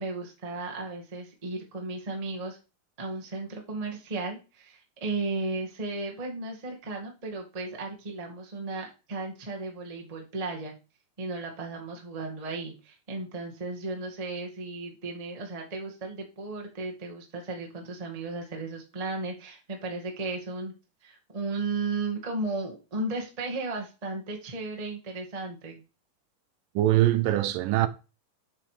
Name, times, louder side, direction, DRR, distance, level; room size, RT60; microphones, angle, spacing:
voice 1, 0.0-2.6 3.0-10.7 11.2-20.7 21.0-25.8, right 3 dB, 25° right, 0.8 m, -35 dB
voice 2, 26.8-27.9, right 14 dB, 80° right, 2.3 m, -22 dB
7.3 x 5.8 x 4.9 m
omnidirectional pair, 4.0 m